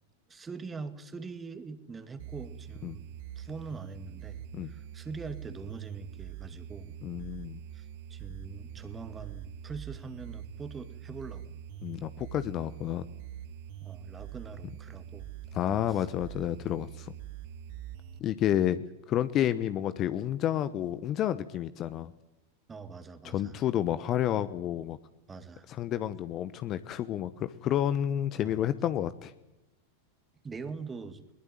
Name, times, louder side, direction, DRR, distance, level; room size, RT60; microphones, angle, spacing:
voice 1, 0.3-3.1 3.4-7.0 7.7-11.6 13.8-15.3 15.7-16.2 22.7-23.6 25.3-25.7 28.4-28.5 30.4-31.2, right 4 dB, 15° right, 10 dB, 2.2 m, -43 dB
sound 1, 2.2-18.2, right 10 dB, 50° right, 1.4 m, -44 dB
voice 2, 7.0-7.6 11.8-13.1 15.5-17.1 18.2-22.1 23.2-25.0 25.7-29.3, left 11 dB, 35° left, 14 dB, 1.0 m, -30 dB
21.5 x 21.0 x 9.2 m, 0.95 s
figure-of-eight pair, 90°, 0 cm